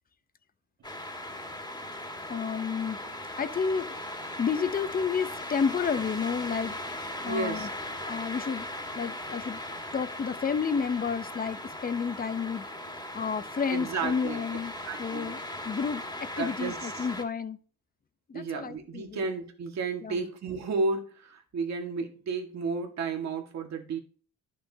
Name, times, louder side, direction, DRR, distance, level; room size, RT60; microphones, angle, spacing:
sound 1, 0.8-17.2, left 1 dB, 15° left, 2.0 m, -38 dB
voice 1, 2.3-3.1 3.4-3.9 4.2-7.7 8.0-8.7 8.9-9.6 9.9-14.7 15.0-17.6 18.3-19.3 20.0-20.2, left 6 dB, 30° left, 0.7 m, -31 dB
voice 2, 7.3-7.7 13.7-14.4 14.9-15.3 16.4-16.9 18.3-24.0, right 4 dB, 65° right, 1.8 m, -32 dB
10.5 x 6.3 x 2.8 m
cardioid pair, 90°, 30 cm